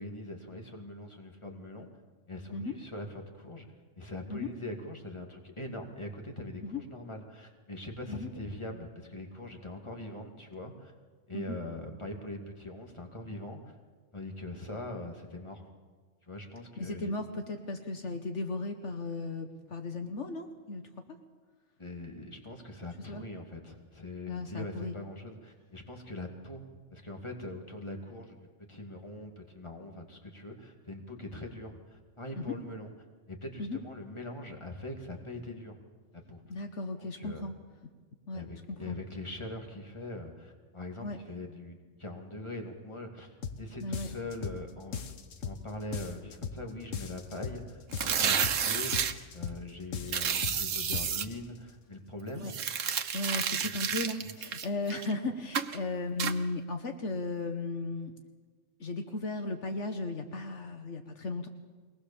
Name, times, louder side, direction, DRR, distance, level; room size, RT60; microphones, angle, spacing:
voice 1, 0.0-1.9 2.3-3.7 4.0-10.9 11.3-13.7 14.1-15.7 16.3-17.1 21.8-32.9 33.3-35.8 36.1-36.4 37.0-37.5 38.3-45.0 45.4-52.5, left 1 dB, 25° left, 3 dB, 2.4 m, -42 dB
voice 2, 16.8-20.9 23.1-23.2 24.3-25.0 32.4-32.5 33.6-33.8 36.5-37.5 37.8-37.9 38.3-39.0 41.0-41.2 43.8-44.1 52.3-52.5 53.1-58.1 58.8-61.5, left 2 dB, 70° left, 6 dB, 1.5 m, -36 dB
sound 1, 43.4-43.6 43.9-44.6 44.9-45.6 45.9-46.6 46.9-47.6 47.9-48.6 48.9-49.6 49.9-50.6 50.9-51.4, left 6 dB, 85° left, 1.5 m, -38 dB
sound 2, 47.9-49.1 50.1-51.2 52.4-55.1 55.5-55.8 56.2-56.3, right 7 dB, 80° right, 1.3 m, -30 dB
23.0 x 19.0 x 7.0 m, 1.4 s
omnidirectional pair, 1.3 m